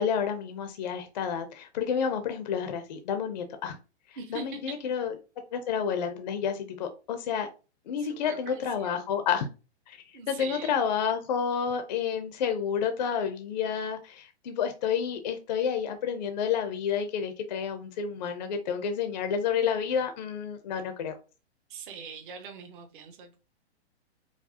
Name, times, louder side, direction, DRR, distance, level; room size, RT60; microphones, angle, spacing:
voice 1, 0.0-3.8 4.3-5.1 5.5-7.5 7.9-9.5 9.9-10.0 10.3-21.2, left 7 dB, 40° left, 8 dB, 0.5 m, -30 dB
voice 2, 4.2-4.8 8.0-9.1 10.1-10.7 21.7-23.4, right 6 dB, 50° right, 4 dB, 0.8 m, -42 dB
4.7 x 2.0 x 2.7 m, 0.31 s
hypercardioid pair, 165°, 33 cm